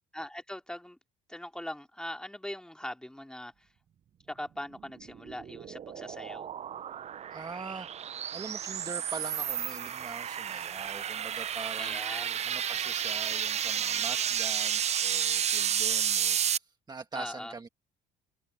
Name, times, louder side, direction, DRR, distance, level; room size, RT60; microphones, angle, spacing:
voice 1, 0.1-1.0 1.3-3.7 4.3-6.5 11.8-12.4 17.1-17.5, left 1 dB, 5° left, 3.1 m, -41 dB
sound 1, 4.9-16.6, right 9 dB, 40° right, 0.6 m, -32 dB
voice 2, 7.3-7.9 8.3-12.0 12.4-17.7, right 4 dB, 25° right, 1.6 m, -43 dB
cardioid pair, 110°, 17 cm